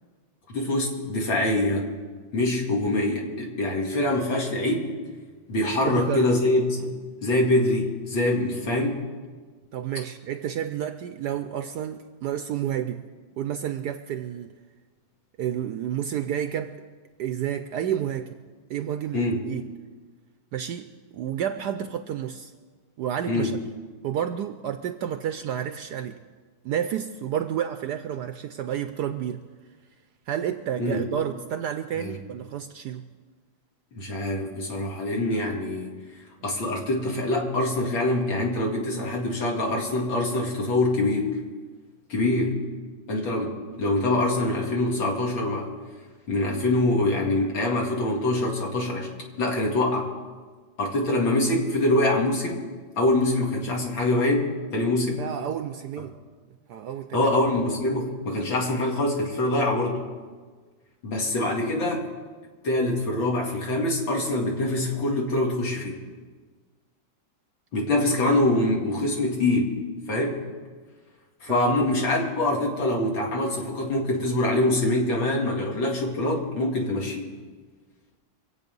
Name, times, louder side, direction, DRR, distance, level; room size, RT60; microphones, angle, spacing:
voice 1, 0.5-1.9 2.3-4.9 5.5-6.9 7.2-9.0 19.1-19.4 23.3-23.5 30.8-31.0 32.0-32.1 33.9-35.9 36.4-41.4 42.1-42.6 43.1-45.7 46.3-49.1 49.4-50.1 50.8-52.6 53.0-55.2 56.0-56.1 57.1-60.0 61.0-62.1 62.6-66.0 67.7-69.7 70.1-70.4 71.4-77.3, left 1 dB, 80° left, 3.0 m, -24 dB
voice 2, 5.8-6.3 9.7-13.0 13.4-14.5 15.4-16.8 17.2-18.4 18.7-19.6 20.5-22.5 23.0-23.6 24.0-26.2 26.6-29.4 30.3-33.1 55.2-56.2 56.7-57.3 71.5-71.7, right 9 dB, 70° right, 1.0 m, -30 dB
24.5 x 8.4 x 5.4 m
omnidirectional pair, 2.1 m